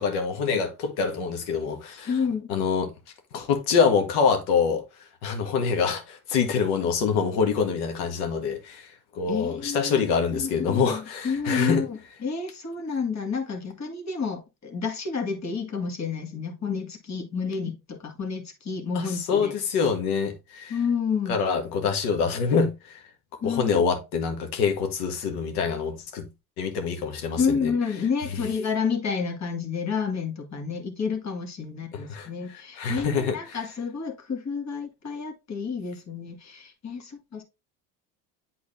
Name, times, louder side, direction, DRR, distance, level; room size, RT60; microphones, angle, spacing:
voice 1, 0.0-2.1 2.5-2.9 3.3-4.8 5.2-11.8 18.9-20.7 21.3-23.0 23.4-26.3 26.6-27.7 32.1-32.3 32.8-33.3, left 5 dB, 80° left, 1.8 m, -25 dB
voice 2, 2.1-2.5 9.3-19.5 20.7-21.4 23.4-23.8 27.4-37.4, left 5 dB, 35° left, 2.2 m, -30 dB
8.5 x 4.0 x 3.3 m
hypercardioid pair, 75°, 45 cm